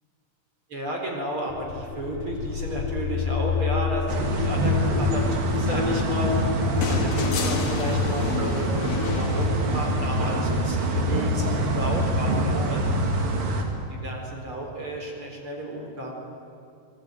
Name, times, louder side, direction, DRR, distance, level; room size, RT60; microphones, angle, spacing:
voice 1, 0.7-6.4 6.9-13.2 13.9-16.1, right 1 dB, 35° right, 0 dB, 4.9 m, -33 dB
sound 1, 1.5-13.3, left 6 dB, 75° left, 2.3 m, -31 dB
sound 2, 4.1-13.6, right 1 dB, 75° right, 4.1 m, -25 dB
sound 3, 6.8-10.2 11.7-11.8, left 7 dB, 55° left, 2.9 m, -32 dB
26.5 x 20.0 x 9.3 m, 2.5 s
omnidirectional pair, 4.0 m